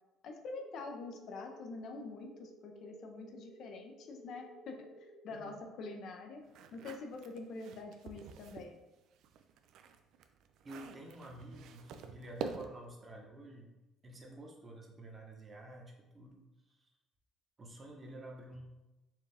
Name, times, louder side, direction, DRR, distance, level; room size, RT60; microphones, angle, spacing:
voice 1, 0.2-6.4 6.7-8.8, left 3 dB, 65° left, 4 dB, 0.5 m, -46 dB
sound 1, 0.5-5.5, equal, 35° left, 1.1 m, -55 dB
voice 2, 5.3-5.6 10.6-13.7 14.0-16.9 17.6-18.6, right 1 dB, 30° right, 0 dB, 0.9 m, -50 dB
sound 2, 6.5-8.7 9.1-12.9, right 6 dB, 75° right, 0.3 m, -47 dB
4.4 x 2.3 x 3.4 m, 1.0 s
cardioid pair, 95°, 0 cm